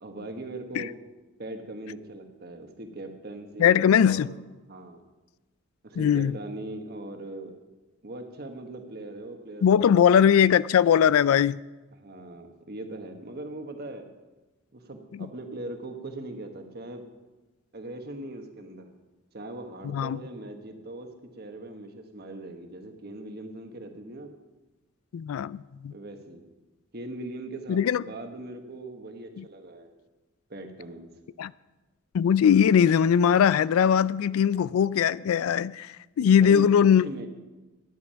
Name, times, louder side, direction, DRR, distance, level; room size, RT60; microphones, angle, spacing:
voice 1, 0.0-0.9 1.4-4.4 4.7-5.0 5.8-7.6 8.0-10.5 12.0-14.1 14.7-17.0 17.7-18.9 19.3-24.3 25.9-26.4 26.9-29.9 30.5-31.1 36.2-36.7 37.0-37.3, right 2 dB, 50° right, 1.3 m, -40 dB
voice 2, 3.6-4.3 6.0-6.4 9.6-11.6 15.2-15.3 19.8-20.2 25.1-25.9 27.7-28.0 29.4-29.5 31.4-31.5 32.1-37.1, left 8 dB, 90° left, 0.3 m, -20 dB
12.0 x 9.4 x 5.7 m
head